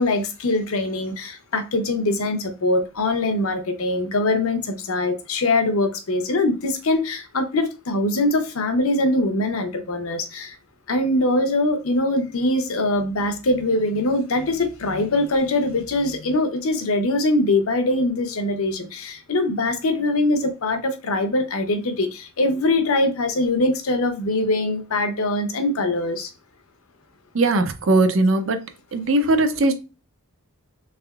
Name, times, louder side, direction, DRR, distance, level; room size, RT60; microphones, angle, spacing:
voice 1, 0.0-10.6 10.9-26.3, left 2 dB, 75° left, 0.7 m, -22 dB
voice 2, 27.3-28.6 28.9-29.7, right 2 dB, 60° right, 0.5 m, -19 dB
3.5 x 3.3 x 2.3 m
head